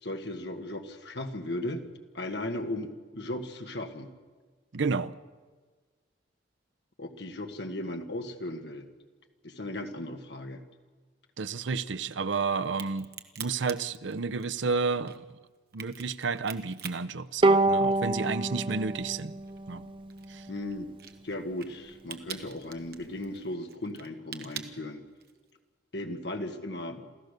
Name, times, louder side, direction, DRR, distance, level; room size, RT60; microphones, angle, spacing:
voice 1, 0.0-1.8 2.1-4.1 7.0-8.9 9.4-10.6 20.5-20.9 21.2-25.0 25.9-27.0, left 1 dB, 60° left, 1.7 m, -36 dB
voice 2, 4.7-5.1 11.4-13.1 13.4-15.2 15.7-19.4 19.7-19.8 20.3-20.5, right 4 dB, 75° right, 0.7 m, -31 dB
Crack, 12.6-18.2 18.5-25.5, right 9 dB, 55° right, 1.3 m, -45 dB
Bowed string instrument, 17.4-20.8, right 2 dB, 25° right, 0.5 m, -27 dB
27.5 x 15.0 x 6.7 m
head